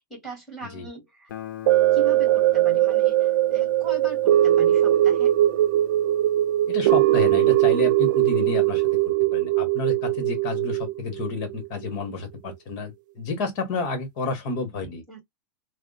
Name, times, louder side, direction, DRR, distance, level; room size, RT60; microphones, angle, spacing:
voice 1, 0.1-1.3 1.9-5.4 15.1-15.2, right 2 dB, ahead, 2.0 m, -39 dB
Guitar, 1.3-8.0, left 12 dB, 75° left, 0.6 m, -43 dB
sound 1, 1.7-12.0 12.5-12.6, right 14 dB, 65° right, 0.4 m, -20 dB
voice 2, 6.7-8.8 9.3-15.0, left 4 dB, 40° left, 1.4 m, -30 dB
3.4 x 2.1 x 2.5 m
supercardioid pair, 165°, 11 cm